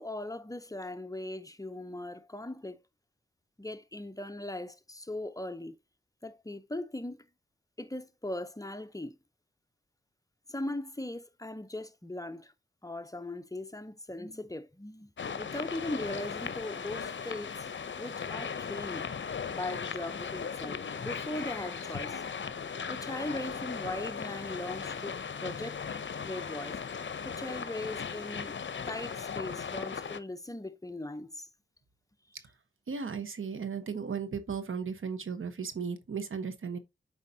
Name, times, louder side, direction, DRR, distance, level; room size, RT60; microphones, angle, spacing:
voice 1, 0.0-2.8 3.6-5.8 6.2-7.2 7.8-9.2 10.5-12.5 12.8-15.1 15.4-17.7 18.0-19.1 19.5-22.2 22.9-25.8 26.2-26.8 27.2-28.5 28.9-31.5, left 1 dB, 15° left, 0.7 m, -39 dB
sound 1, 15.2-30.2, left 6 dB, 65° left, 0.7 m, -37 dB
voice 2, 32.9-36.8, right 6 dB, 85° right, 1.1 m, -35 dB
8.1 x 4.9 x 2.8 m
wide cardioid pair, 60°, 21 cm